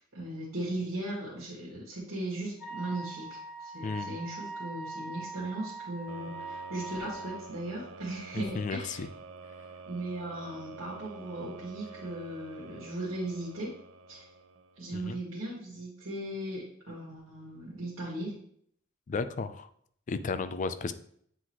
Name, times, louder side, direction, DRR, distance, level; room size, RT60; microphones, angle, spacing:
voice 1, 0.1-9.0 9.9-13.7 14.1-14.3 14.8-18.3, right 1 dB, 90° right, -7 dB, 1.8 m, -37 dB
Wind instrument woodwind instrument, 2.6-7.4, right 3 dB, 10° right, 2.0 m, -42 dB
voice 2, 3.8-4.1 8.3-9.1 14.9-15.2 19.1-19.7 20.1-20.9, left 4 dB, 40° left, 12 dB, 0.4 m, -34 dB
sound 1, 6.1-15.0, right 5 dB, 75° right, 0.5 m, -48 dB
8.1 x 3.9 x 3.0 m, 0.65 s
head